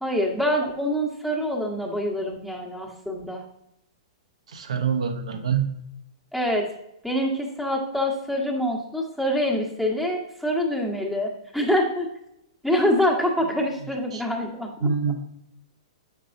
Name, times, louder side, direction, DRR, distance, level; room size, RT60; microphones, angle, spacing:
voice 1, 0.0-3.4 6.3-6.7 7.0-12.1 12.6-14.9, equal, ahead, -2 dB, 1.2 m, -25 dB
voice 2, 4.5-5.6 14.1-14.2 14.8-15.2, right 6 dB, 80° right, 7 dB, 0.9 m, -25 dB
7.4 x 5.4 x 2.6 m, 0.81 s
hypercardioid pair, 130°, 3 cm